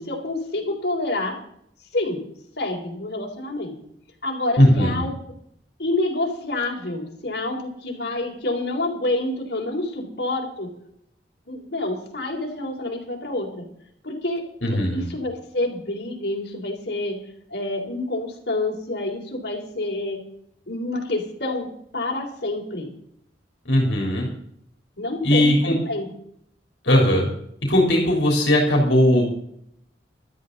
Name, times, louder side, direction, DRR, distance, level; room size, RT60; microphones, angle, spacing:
voice 1, 0.0-1.4 1.9-2.2 2.6-3.7 4.2-5.1 5.8-10.7 11.5-13.6 14.0-17.2 17.5-20.2 20.7-21.7 21.9-22.9 25.0-26.1, left 2 dB, 60° left, -2 dB, 4.0 m, -28 dB
voice 2, 4.6-5.0 14.6-15.0 23.7-24.3 25.2-25.7 26.9-27.3 27.7-29.4, left 1 dB, 75° left, 0 dB, 3.7 m, -18 dB
16.0 x 13.5 x 4.1 m, 0.69 s
head